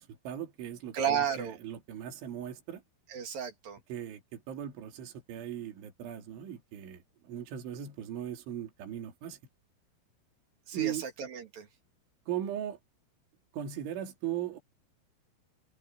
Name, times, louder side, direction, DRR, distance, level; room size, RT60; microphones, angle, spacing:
voice 1, 0.0-2.8 3.9-9.4 10.7-11.1 12.3-12.8 13.5-14.6, right 10 dB, 70° right, 5.5 m, -38 dB
voice 2, 0.9-1.6 3.1-3.8 10.7-11.7, right 8 dB, 50° right, 3.7 m, -33 dB
omnidirectional pair, 5.7 m